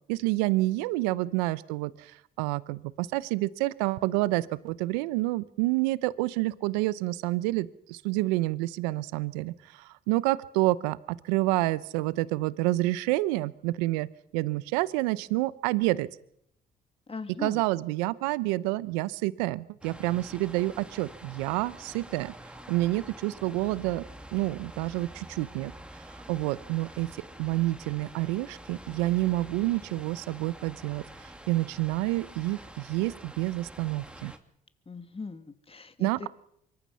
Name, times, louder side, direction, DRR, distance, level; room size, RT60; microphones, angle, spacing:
voice 1, 0.1-11.0 11.2-14.1 14.3-16.1 17.4-22.3 22.7-24.0 24.3-25.7 26.3-27.1 27.4-31.0 31.5-34.3 36.0-36.2, right 19 dB, 85° right, 18 dB, 0.8 m, -28 dB
voice 2, 17.1-17.6 34.9-36.3, left 4 dB, 25° left, 9 dB, 2.5 m, -40 dB
sound 1, 19.8-34.4, right 1 dB, 5° right, 3.0 m, -47 dB
25.5 x 23.0 x 5.7 m, 0.72 s
hypercardioid pair, 55°, 21 cm